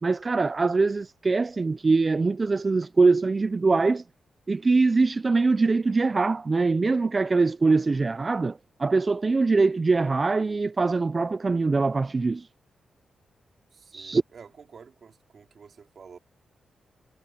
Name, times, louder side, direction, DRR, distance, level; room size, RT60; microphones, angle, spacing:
voice 1, 0.0-4.0 4.5-12.5 13.9-14.2, right 3 dB, 35° right, 0.4 m, -23 dB
voice 2, 13.7-16.2, right 6 dB, 60° right, 3.0 m, -49 dB
cardioid pair, 80°, 0 cm